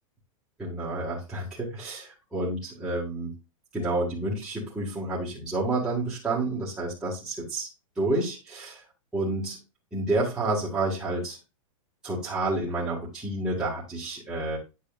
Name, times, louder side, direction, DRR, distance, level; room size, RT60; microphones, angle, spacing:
voice 1, 0.6-3.4 3.7-7.7 8.0-8.8 9.1-9.6 9.9-11.4 12.0-14.6, right 2 dB, 5° right, -9 dB, 1.7 m, -29 dB
9.2 x 6.7 x 2.4 m, 0.28 s
supercardioid pair, 165°, 18 cm